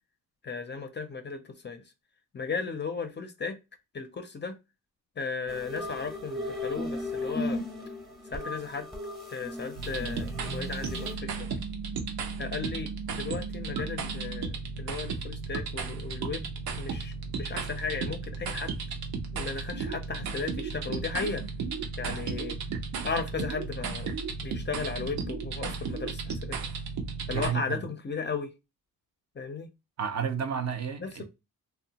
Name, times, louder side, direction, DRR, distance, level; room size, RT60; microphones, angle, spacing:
voice 1, 0.4-1.8 2.3-3.6 3.9-4.6 5.2-7.6 8.3-8.9 9.3-11.5 12.4-16.5 16.8-18.7 19.3-21.4 22.0-22.6 23.0-24.1 24.4-26.6 27.3-28.5 29.4-29.7 31.0-31.2, left 5 dB, 30° left, 0.4 m, -35 dB
sound 1, 5.5-11.1, left 2 dB, ahead, 0.7 m, -36 dB
sound 2, 9.8-27.5, right 4 dB, 90° right, 0.6 m, -34 dB
voice 2, 22.0-22.4 27.3-27.8 30.0-31.2, right 7 dB, 50° right, 0.5 m, -32 dB
2.7 x 2.1 x 2.8 m
cardioid pair, 95°, 36 cm